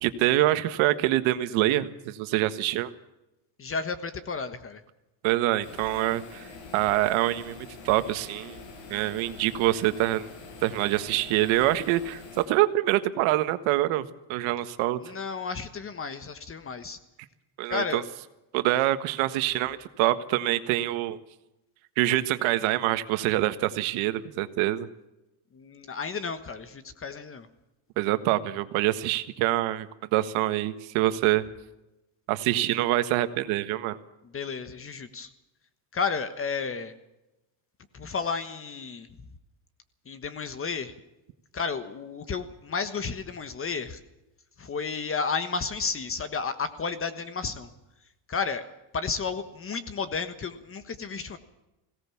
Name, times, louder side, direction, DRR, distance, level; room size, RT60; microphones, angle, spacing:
voice 1, 0.0-2.9 5.2-8.6 8.9-10.3 10.6-15.0 17.6-18.0 18.5-21.2 22.0-24.9 28.0-31.4 32.3-34.0, right 15 dB, 90° right, 11 dB, 1.6 m, -25 dB
voice 2, 3.6-4.8 15.0-17.0 17.7-18.0 25.5-27.5 34.3-35.3 35.9-36.9 37.9-39.1 40.1-40.9 41.5-44.0 44.6-47.7 48.3-48.6 48.9-51.4, left 5 dB, 30° left, 11 dB, 1.3 m, -32 dB
sound 1, 5.6-12.5, left 4 dB, 70° left, 7.8 m, -45 dB
21.5 x 17.5 x 7.1 m, 0.94 s
cardioid pair, 140°, 46 cm